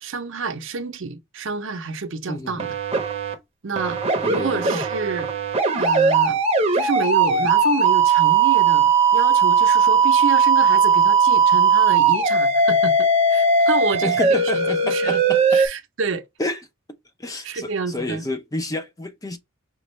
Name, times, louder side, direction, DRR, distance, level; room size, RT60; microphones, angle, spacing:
voice 1, 0.0-2.7 3.6-4.0 4.3-5.3 5.8-6.4 6.7-15.2 15.5-16.2 17.4-18.3, right 4 dB, 65° right, 0.6 m, -28 dB
voice 2, 2.3-2.7 4.2-4.8 14.0-15.6 16.4-16.6 17.2-19.4, left 1 dB, 15° left, 0.6 m, -29 dB
sound 1, 2.6-3.3 3.8-15.7, right 5 dB, 30° right, 0.8 m, -18 dB
5.2 x 2.3 x 3.1 m
head